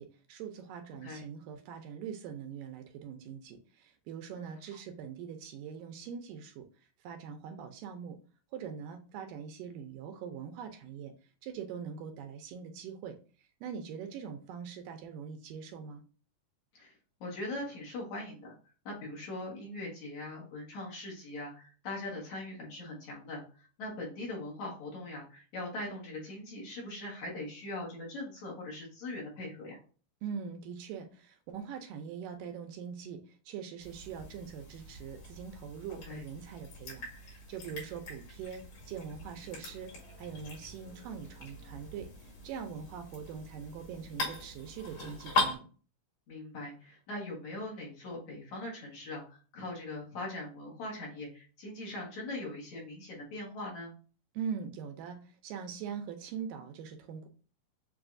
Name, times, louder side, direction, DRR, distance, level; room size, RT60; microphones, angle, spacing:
voice 1, 0.0-6.7 7.0-8.2 8.5-11.1 11.4-13.2 13.6-16.0 30.2-39.9 40.2-45.6 54.3-57.3, right 7 dB, 80° right, 6 dB, 2.1 m, -42 dB
voice 2, 16.7-18.5 18.9-29.8 35.9-36.2 46.3-53.9, left 2 dB, 60° left, -3 dB, 2.4 m, -41 dB
sound 1, 33.8-45.6, left 2 dB, 80° left, 3.8 m, -40 dB
7.0 x 2.7 x 2.5 m, 0.38 s
omnidirectional pair, 4.0 m